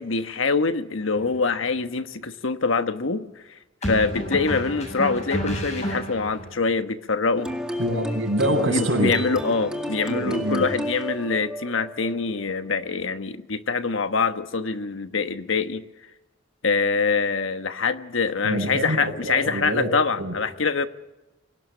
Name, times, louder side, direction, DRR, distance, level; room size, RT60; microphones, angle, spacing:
voice 1, 0.0-3.3 3.8-7.5 8.5-15.8 16.6-20.9, left 4 dB, 80° left, 10 dB, 1.2 m, -24 dB
sound 1, 1.2-1.4 3.8-6.5, equal, 35° left, 7.4 m, -30 dB
sound 2, 7.4-12.9, equal, 5° right, 2.1 m, -33 dB
voice 2, 7.8-9.1 10.1-10.6 18.4-19.9 20.2-20.3, right 1 dB, 70° right, 0 dB, 6.8 m, -25 dB
23.5 x 18.0 x 7.2 m, 1.0 s
head